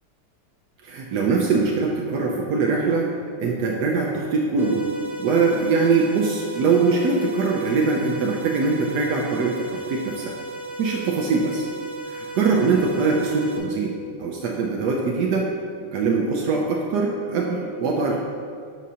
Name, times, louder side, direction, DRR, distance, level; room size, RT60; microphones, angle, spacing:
voice 1, 0.8-3.1 3.4-4.9 5.2-10.3 10.8-11.7 12.1-15.5 15.9-18.2, right 4 dB, 80° right, -1 dB, 0.9 m, -22 dB
sound 1, 4.6-13.6, right 2 dB, ahead, 0.5 m, -35 dB
7.9 x 6.1 x 2.8 m, 2.2 s
omnidirectional pair, 2.4 m